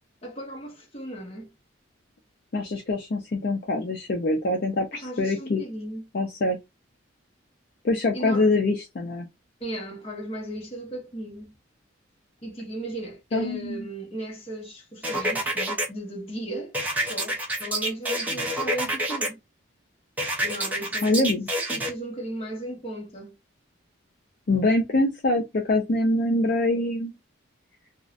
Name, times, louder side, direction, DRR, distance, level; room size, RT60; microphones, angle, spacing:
voice 1, 0.2-1.5 4.9-6.1 8.1-8.5 9.6-11.5 12.4-19.4 20.4-21.3 21.7-23.3, right 1 dB, 30° left, 0.8 m, -36 dB
voice 2, 2.5-5.6 6.1-6.6 7.8-9.3 13.3-13.8 21.0-21.5 24.5-27.1, left 2 dB, 50° left, 0.4 m, -24 dB
sound 1, 15.0-15.9 16.7-19.3 20.2-21.9, right 1 dB, 10° right, 0.6 m, -27 dB
2.4 x 2.0 x 2.4 m
head